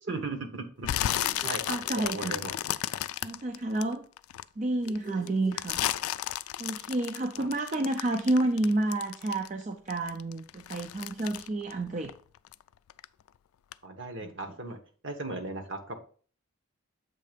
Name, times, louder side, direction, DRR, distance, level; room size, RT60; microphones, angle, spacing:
voice 1, 0.0-2.5 7.4-7.5 13.8-14.8 15.0-15.9, right 2 dB, 55° right, 5 dB, 1.1 m, -37 dB
sound 1, 0.8-4.4 4.9-9.6 9.9-12.6 12.9-13.3 13.7-13.8, left 12 dB, 85° left, 0.3 m, -33 dB
voice 2, 1.4-2.4 3.2-4.0 4.6-5.8 6.6-12.1 14.2-14.3, right 2 dB, 35° right, 5 dB, 0.4 m, -30 dB
sound 2, 1.4-3.3 4.8-6.4, right 4 dB, 85° right, 2.8 m, -49 dB
7.5 x 3.3 x 5.1 m, 0.43 s
head